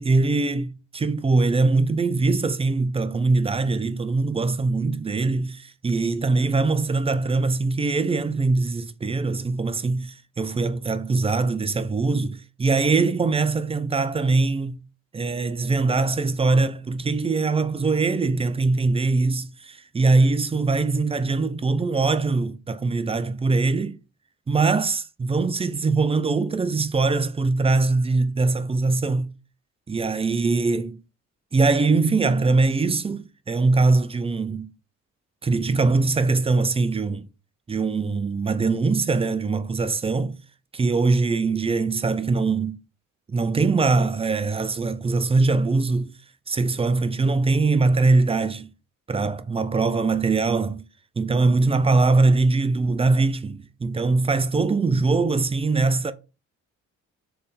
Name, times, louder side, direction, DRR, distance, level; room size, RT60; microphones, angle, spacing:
voice 1, 0.0-14.8 15.1-24.0 24.5-29.3 29.9-31.0 31.5-34.7 35.4-37.3 37.7-40.4 40.7-42.8 43.3-46.1 46.5-48.7 49.1-50.8 51.2-56.1, right 3 dB, 20° right, 0.4 m, -22 dB
3.5 x 3.4 x 4.1 m
cardioid pair, 90°, 30 cm